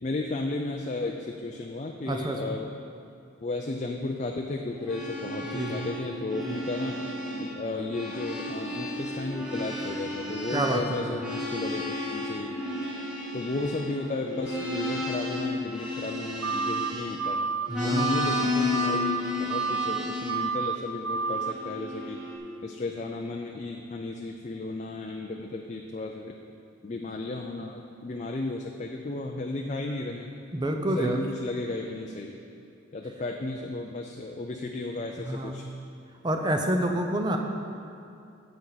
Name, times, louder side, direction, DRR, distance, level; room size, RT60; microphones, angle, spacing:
voice 1, 0.0-2.7 3.4-7.0 7.4-12.5 13.3-17.4 17.8-22.2 22.6-26.3 26.8-30.3 31.0-32.3 32.9-35.7, left 2 dB, 35° left, 2 dB, 0.4 m, -34 dB
voice 2, 2.1-2.5 5.5-5.9 6.4-6.5 10.5-11.2 17.7-18.2 30.5-31.2 35.2-35.6 36.2-37.4, right 1 dB, 20° right, 3 dB, 0.6 m, -28 dB
sound 1, 4.7-7.5 7.8-17.3 17.7-20.4 21.1-22.4, left 2 dB, 5° right, 1.3 m, -33 dB
sound 2, 16.4-16.9 17.2-17.7 18.0-18.4 18.7-19.2 19.5-20.0 20.3-20.8 21.0-21.5, right 5 dB, 85° right, 0.6 m, -29 dB
9.9 x 7.7 x 4.0 m, 2.6 s
head